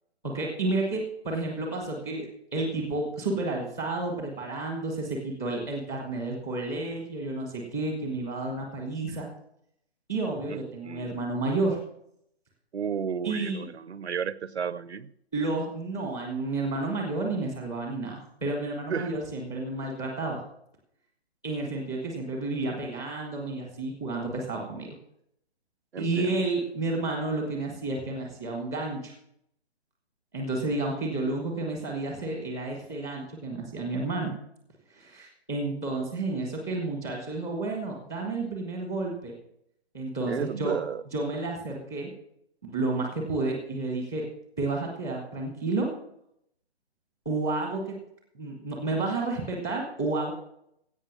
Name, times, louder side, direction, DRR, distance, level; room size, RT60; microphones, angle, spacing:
voice 1, 0.2-9.3 10.1-11.8 13.2-13.7 15.3-20.4 21.4-25.0 26.0-29.1 30.3-34.3 34.9-39.3 39.9-40.8 41.1-42.1 42.6-44.3 44.6-45.9 47.3-48.0 48.3-50.3, right 2 dB, 5° left, 0.4 m, -31 dB
voice 2, 10.5-11.2 12.7-15.1 18.9-19.2 25.9-26.4 40.3-41.0, right 7 dB, 85° right, 0.8 m, -33 dB
16.0 x 5.6 x 7.0 m
figure-of-eight pair, 150°, 32 cm